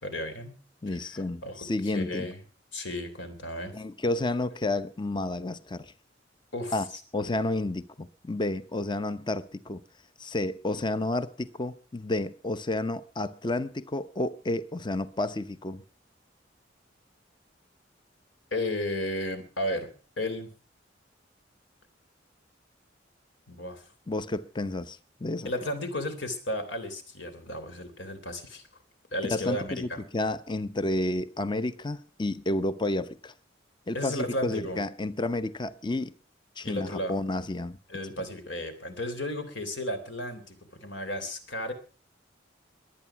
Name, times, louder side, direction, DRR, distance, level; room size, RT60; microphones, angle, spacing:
voice 1, 0.0-0.6 0.9-2.4 2.7-3.8 6.5-6.8 7.2-7.3 18.5-19.9 20.2-20.5 23.5-23.9 25.4-28.6 29.1-30.0 33.9-34.8 36.6-37.1 37.9-41.7, left 1 dB, 75° left, 3.4 m, -34 dB
voice 2, 0.8-2.3 3.7-5.9 6.7-6.9 7.1-9.8 10.2-15.8 24.1-25.5 29.3-33.3 33.9-36.1 36.6-37.8, left 2 dB, 25° left, 0.7 m, -31 dB
22.5 x 9.2 x 5.9 m
head